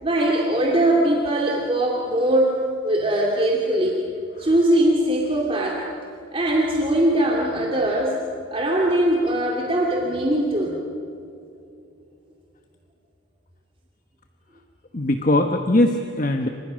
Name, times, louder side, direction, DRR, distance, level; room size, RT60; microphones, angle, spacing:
voice 1, 0.0-2.5 2.8-4.0 4.4-5.8 6.3-8.2 8.5-10.8, right 1 dB, 25° right, -1 dB, 2.6 m, -21 dB
voice 2, 14.9-16.5, left 1 dB, 40° left, 5 dB, 1.2 m, -20 dB
29.0 x 25.5 x 6.4 m, 2.7 s
head